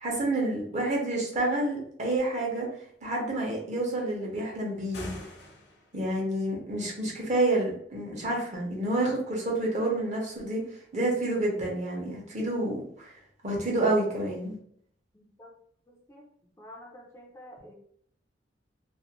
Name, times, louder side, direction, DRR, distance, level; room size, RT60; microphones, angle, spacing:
voice 1, 0.0-2.7 3.0-5.1 5.9-10.6 10.9-13.1 13.4-14.6, right 2 dB, 40° right, -2 dB, 0.7 m, -29 dB
sound 1, 4.8-6.1, left 1 dB, 65° left, 0.6 m, -43 dB
voice 2, 15.1-15.5 15.9-16.2 16.6-17.7, left 1 dB, 15° left, -2 dB, 0.4 m, -49 dB
2.4 x 2.1 x 2.8 m, 0.65 s
head